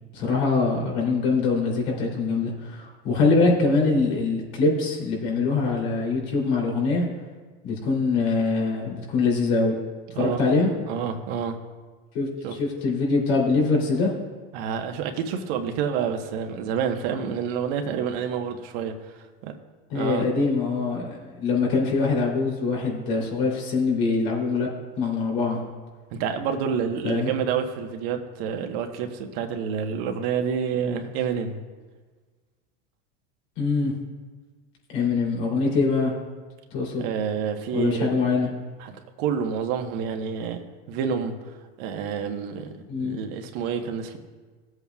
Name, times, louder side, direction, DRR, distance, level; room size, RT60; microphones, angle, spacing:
voice 1, 0.1-7.0 7.6-9.8 10.1-10.7 12.1-12.3 12.6-14.1 19.9-24.7 25.0-25.6 27.0-27.3 33.6-33.9 34.9-36.1 36.7-37.1 37.7-38.5 42.9-43.2, left 4 dB, 80° left, -1 dB, 3.3 m, -23 dB
voice 2, 10.1-10.4 10.9-11.6 12.4-12.5 14.5-19.6 19.9-20.2 26.1-31.6 37.0-38.2 38.8-40.6 40.9-44.2, right 7 dB, 70° right, 4 dB, 1.2 m, -28 dB
17.5 x 7.9 x 2.4 m, 1.4 s
supercardioid pair, 125°, 30 cm